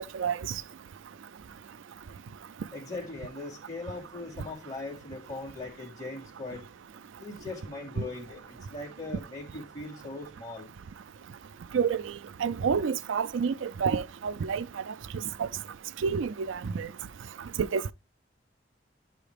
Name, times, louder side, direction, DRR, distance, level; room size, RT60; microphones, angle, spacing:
voice 1, 2.7-6.6 7.2-10.7, left 2 dB, 20° left, 3.1 m, -40 dB
voice 2, 11.7-12.1 12.4-14.9 15.4-15.5 16.0-16.9 17.6-17.9, right 6 dB, 90° right, 0.4 m, -29 dB
11.0 x 5.8 x 3.4 m
head